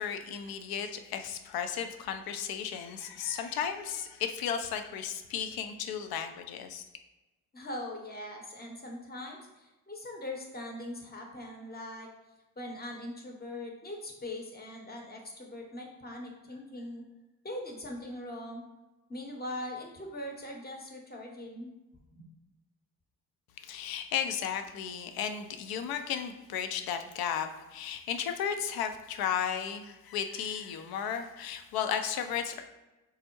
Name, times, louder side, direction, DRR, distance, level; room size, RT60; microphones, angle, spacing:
voice 1, 0.0-6.8 23.6-32.6, left 8 dB, 60° left, 7 dB, 0.5 m, -34 dB
voice 2, 7.5-12.1 12.6-17.0 17.4-18.6 19.1-21.7 22.1-22.3, left 1 dB, 20° left, 1 dB, 0.8 m, -41 dB
3.5 x 2.0 x 3.0 m, 1.1 s
hypercardioid pair, 40°, 42 cm